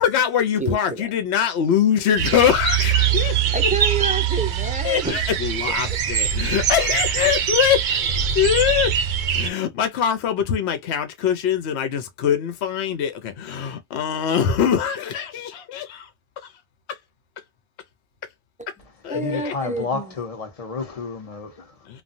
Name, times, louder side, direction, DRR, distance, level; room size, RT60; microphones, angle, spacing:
voice 1, 0.0-3.4 4.8-8.0 8.3-8.9 9.3-16.1 16.4-16.5 16.9-17.0 19.0-19.5 21.9-22.0, left 8 dB, 70° left, 0.9 m, -23 dB
voice 2, 0.6-1.1 3.5-5.2 19.1-20.0, right 3 dB, 15° right, 0.3 m, -28 dB
sound 1, 2.2-9.5, right 9 dB, 60° right, 0.6 m, -22 dB
voice 3, 19.1-21.9, left 4 dB, 35° left, 0.9 m, -31 dB
3.2 x 2.2 x 2.5 m
omnidirectional pair, 1.2 m